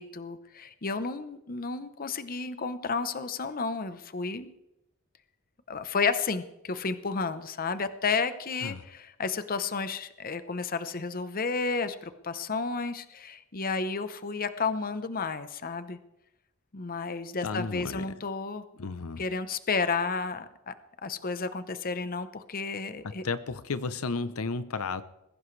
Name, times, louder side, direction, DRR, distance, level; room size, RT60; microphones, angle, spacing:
voice 1, 0.0-4.5 5.7-16.0 16.7-18.6 19.2-20.7 21.0-23.2, left 4 dB, 45° left, 11 dB, 0.8 m, -32 dB
voice 2, 17.4-18.2 18.8-19.2 23.0-25.0, left 4 dB, 80° left, 13 dB, 0.7 m, -33 dB
21.0 x 16.0 x 3.3 m, 0.89 s
head